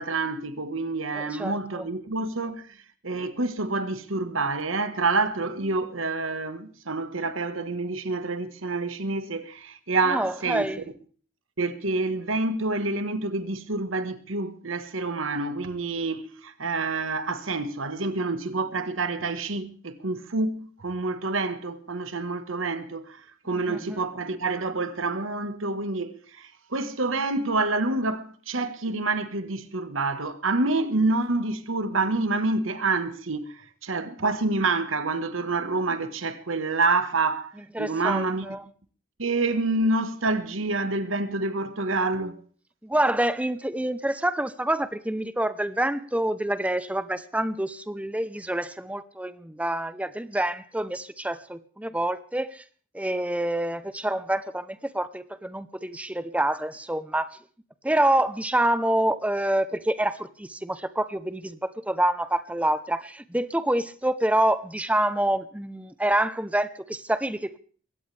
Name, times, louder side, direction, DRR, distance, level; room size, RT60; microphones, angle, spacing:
voice 1, 0.0-2.8 3.0-10.7 11.6-38.5 39.2-42.4, right 3 dB, 75° right, 1.5 m, -27 dB
voice 2, 1.1-1.8 10.0-10.8 23.5-24.0 37.7-38.6 42.8-52.6 52.9-57.4 57.8-67.6, right 1 dB, 5° right, 0.8 m, -27 dB
22.0 x 17.0 x 3.4 m
head